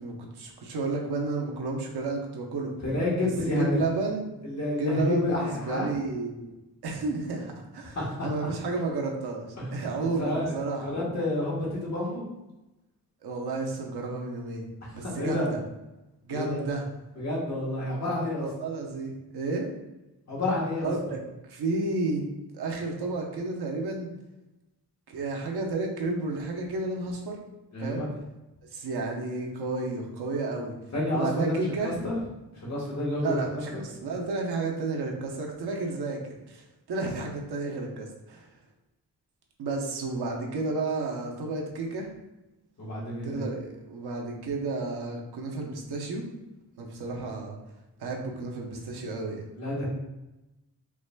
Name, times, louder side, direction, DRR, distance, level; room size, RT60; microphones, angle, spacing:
voice 1, 0.0-2.7 3.2-4.3 4.8-6.5 6.8-8.0 8.2-11.0 13.2-14.7 14.9-15.6 16.2-16.8 18.4-19.7 20.8-21.2 21.4-22.3 22.5-24.1 25.1-27.4 27.8-28.1 28.7-30.7 31.1-32.0 33.2-36.2 36.5-38.5 39.6-42.1 43.2-46.2 46.8-47.6 48.0-49.4, right 3 dB, 80° right, 0 dB, 0.8 m, -32 dB
voice 2, 2.8-3.9 4.4-5.9 7.9-8.5 9.6-9.7 10.2-12.2 14.9-15.5 16.3-16.6 17.2-18.5 20.3-20.9 27.7-28.1 30.9-32.2 32.5-33.5 42.8-43.5 49.5-49.9, left 2 dB, 45° left, -5 dB, 1.4 m, -29 dB
4.8 x 3.2 x 2.2 m, 0.99 s
wide cardioid pair, 115°, 39 cm